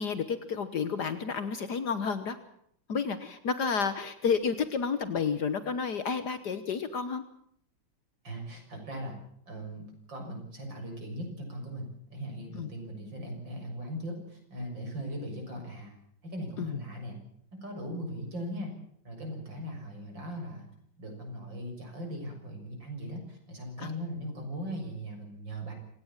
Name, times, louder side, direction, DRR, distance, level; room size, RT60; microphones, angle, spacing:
voice 1, 0.0-2.4 2.9-7.2 12.5-12.7 16.6-16.8 23.8-23.9, left 6 dB, 65° left, 11 dB, 1.7 m, -31 dB
voice 2, 8.2-9.1 9.5-16.0 16.2-17.2 17.6-18.7 19.0-20.7 21.0-25.7, equal, 80° right, 2 dB, 7.4 m, -39 dB
26.5 x 17.5 x 7.3 m, 0.68 s
omnidirectional pair, 2.0 m